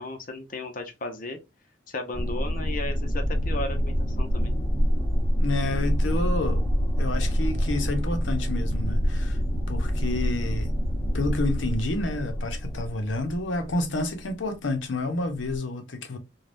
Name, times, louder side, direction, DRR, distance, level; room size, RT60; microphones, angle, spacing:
voice 1, 0.0-1.4 1.9-4.5, left 2 dB, 45° left, 0.7 m, -35 dB
sound 1, 2.1-14.2 15.4-15.6, equal, 20° left, 0.9 m, -26 dB
voice 2, 5.3-6.6 7.0-9.4 9.7-10.7 11.1-16.2, left 2 dB, 85° left, 0.8 m, -29 dB
3.3 x 2.3 x 2.5 m
head